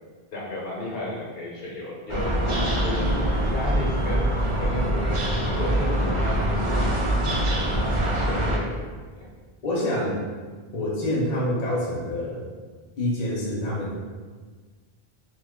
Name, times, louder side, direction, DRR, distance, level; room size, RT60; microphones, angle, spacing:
voice 1, 0.3-2.4 2.8-6.9 7.3-8.7 9.1-9.2, left 1 dB, 70° left, -4 dB, 1.0 m, -33 dB
sound 1, 2.1-8.6, right 1 dB, 45° right, 0.4 m, -24 dB
voice 2, 9.6-10.2 10.7-12.4 13.0-14.0, left 1 dB, 45° left, -5 dB, 0.7 m, -26 dB
2.8 x 2.2 x 3.6 m, 1.5 s
omnidirectional pair, 1.0 m